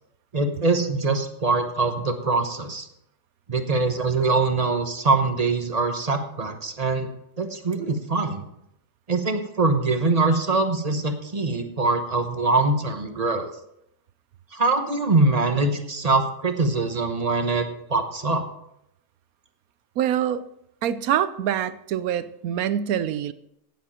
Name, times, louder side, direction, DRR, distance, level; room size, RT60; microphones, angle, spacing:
voice 1, 0.3-2.9 3.5-7.1 7.4-8.4 9.1-13.5 14.5-18.4, right 3 dB, 30° right, 7 dB, 0.9 m, -23 dB
voice 2, 20.0-20.4 20.8-23.3, right 10 dB, 70° right, 15 dB, 0.9 m, -25 dB
17.5 x 7.5 x 4.3 m, 0.80 s
omnidirectional pair, 1.9 m